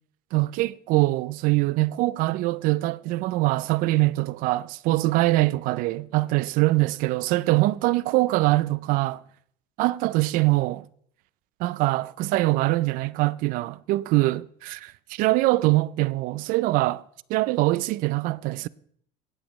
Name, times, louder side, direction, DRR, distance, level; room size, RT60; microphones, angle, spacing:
voice 1, 0.3-9.2 9.8-10.9 11.6-17.0 17.3-18.7, right 19 dB, 60° right, 0.4 m, -23 dB
18.5 x 8.1 x 3.1 m
cardioid pair, 145°, 16 cm